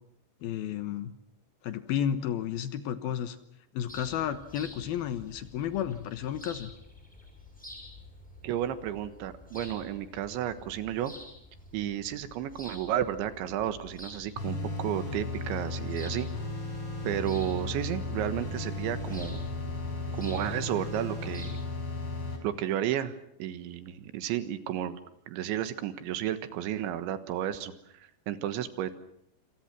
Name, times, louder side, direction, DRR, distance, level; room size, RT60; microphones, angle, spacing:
voice 1, 0.4-1.1 1.6-3.4 3.7-6.7, left 9 dB, 65° left, 11 dB, 2.8 m, -32 dB
sound 1, 3.9-21.5, left 1 dB, ahead, 6.9 m, -48 dB
voice 2, 8.4-11.1 11.7-16.3 17.0-19.4 20.1-21.6 22.4-23.1 23.4-25.0 25.3-28.9, right 11 dB, 90° right, 11 dB, 3.8 m, -32 dB
sound 2, 14.4-22.4, left 2 dB, 30° left, 5.8 m, -35 dB
27.5 x 27.0 x 6.1 m, 0.72 s
omnidirectional pair, 5.1 m